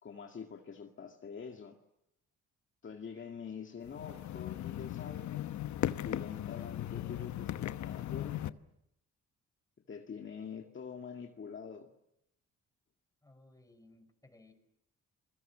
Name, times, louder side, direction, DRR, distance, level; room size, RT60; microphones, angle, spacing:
voice 1, 0.0-1.8 2.8-5.4 6.0-8.6 9.9-11.9, left 6 dB, 40° left, 3 dB, 2.1 m, -45 dB
sound 1, 3.9-8.5, left 12 dB, 70° left, 1.0 m, -37 dB
voice 2, 13.2-14.5, left 2 dB, 10° left, 7 dB, 5.6 m, -60 dB
28.5 x 22.0 x 7.4 m, 0.81 s
cardioid pair, 90°, 30 cm